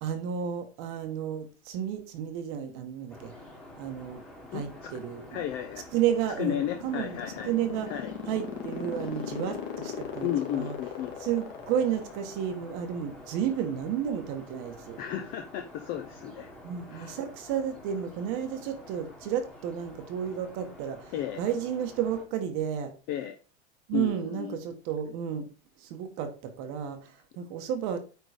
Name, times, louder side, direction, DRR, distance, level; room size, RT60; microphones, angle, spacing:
voice 1, 0.0-3.3 3.8-4.2 4.5-5.5 5.9-7.2 7.4-7.9 8.3-10.8 11.2-15.0 16.6-22.9 23.9-25.5 25.8-28.0, right 9 dB, 35° right, 1.2 m, -32 dB
sound 1, 3.1-22.2, left 1 dB, ahead, 1.5 m, -49 dB
voice 2, 4.5-4.9 5.3-5.8 6.4-7.5 7.9-8.1 10.2-11.1 15.0-16.5 16.9-17.1 21.1-21.4 23.1-23.3 23.9-24.6, left 10 dB, 30° left, 0.6 m, -33 dB
sound 2, 6.3-12.8, left 7 dB, 60° left, 2.5 m, -37 dB
9.2 x 3.9 x 4.9 m
supercardioid pair, 170°, 33 cm